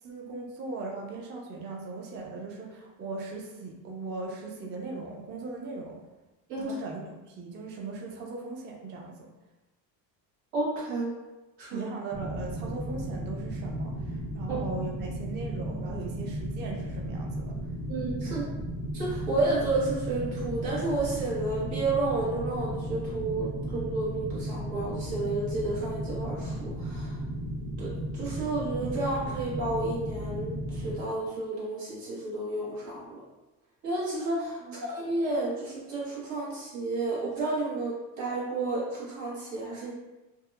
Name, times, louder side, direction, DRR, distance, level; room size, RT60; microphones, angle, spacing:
voice 1, 0.0-6.0 6.6-9.3 11.7-17.6 18.2-18.3 34.6-34.9, right 3 dB, 25° right, 0 dB, 0.4 m, -39 dB
voice 2, 10.5-11.1 11.6-11.9 14.5-14.6 17.9-18.4 18.9-27.2 27.8-33.2 33.8-39.9, right 2 dB, 85° right, -7 dB, 1.2 m, -31 dB
sound 1, 12.1-31.0, right 1 dB, 55° right, 1.0 m, -35 dB
2.7 x 2.1 x 2.2 m, 1.1 s
supercardioid pair, 100°, 44 cm